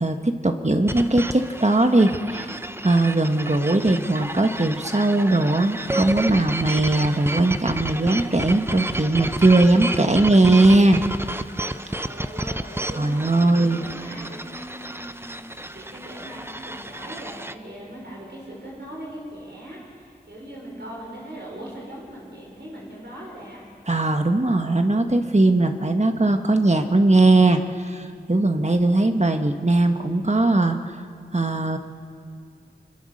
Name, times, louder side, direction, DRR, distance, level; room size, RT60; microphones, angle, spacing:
voice 1, 0.0-2.5 2.8-11.0 13.0-13.8 23.9-30.8 31.3-31.8, right 2 dB, 40° right, 6 dB, 1.5 m, -19 dB
sound 1, 0.9-17.5, right 1 dB, 15° right, 0.8 m, -31 dB
voice 2, 12.0-23.6, right 1 dB, 85° right, -4 dB, 5.3 m, -40 dB
26.0 x 22.5 x 6.6 m, 2.4 s
wide cardioid pair, 45°, 17 cm